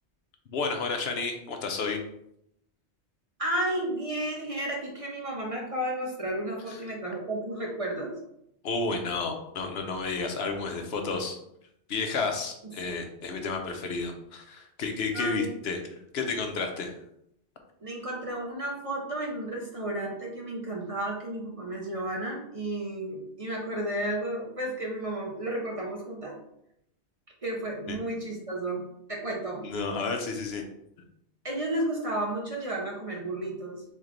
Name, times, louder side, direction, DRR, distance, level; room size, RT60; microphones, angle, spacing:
voice 1, 0.5-2.0 6.7-6.8 8.6-11.4 11.9-16.9 27.9-28.0 29.6-30.6, left 4 dB, 70° left, 4 dB, 0.9 m, -31 dB
voice 2, 3.4-8.1 12.6-12.7 15.1-15.5 17.8-26.3 27.4-28.8 29.1-29.7 31.4-33.8, right 1 dB, 35° right, -2 dB, 0.7 m, -32 dB
3.5 x 3.2 x 3.7 m, 0.77 s
omnidirectional pair, 1.1 m